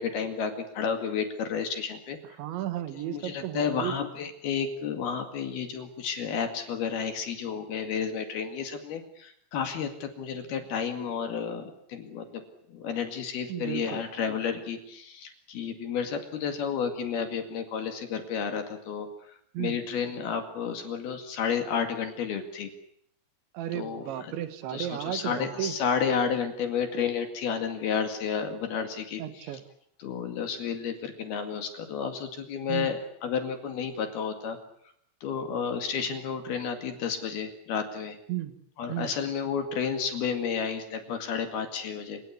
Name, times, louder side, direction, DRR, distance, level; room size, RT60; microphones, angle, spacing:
voice 1, 0.0-2.2 3.1-12.4 12.7-22.7 23.7-24.3 24.7-29.2 30.0-34.6 35.2-38.2 38.8-42.2, left 6 dB, 60° left, 7 dB, 3.5 m, -31 dB
voice 2, 2.4-4.0 13.5-14.0 19.5-19.8 23.5-25.7 29.2-29.6 32.7-32.9 38.3-38.6 38.9-39.1, right 12 dB, 70° right, 11 dB, 3.7 m, -34 dB
28.5 x 17.5 x 9.8 m, 0.69 s
omnidirectional pair, 5.9 m